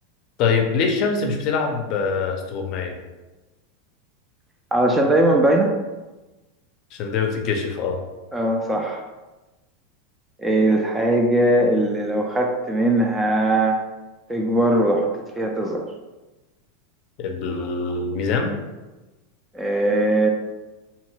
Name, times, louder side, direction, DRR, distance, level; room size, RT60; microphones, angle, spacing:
voice 1, 0.4-2.9 6.9-8.0 17.2-18.6, left 5 dB, 50° left, 3 dB, 0.5 m, -24 dB
voice 2, 4.7-5.8 8.3-9.0 10.4-13.8 14.3-15.1 15.4-15.8 19.5-20.3, right 1 dB, 10° right, 2 dB, 0.3 m, -20 dB
2.8 x 2.2 x 3.1 m, 1.1 s
supercardioid pair, 130°, 0 cm